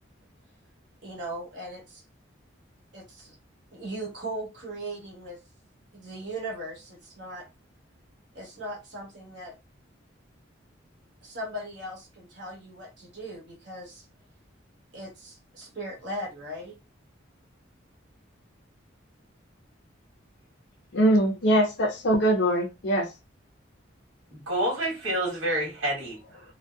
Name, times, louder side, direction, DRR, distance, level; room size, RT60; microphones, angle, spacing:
voice 1, 1.0-2.0 2.9-3.3 3.7-5.4 5.9-7.5 8.3-9.5 11.2-14.0 14.9-16.8, right 1 dB, 60° right, 1.1 m, -38 dB
voice 2, 20.9-23.1, right 1 dB, 60° left, 0.5 m, -22 dB
voice 3, 24.3-26.4, right 1 dB, 85° right, 1.3 m, -28 dB
2.7 x 2.0 x 2.2 m
head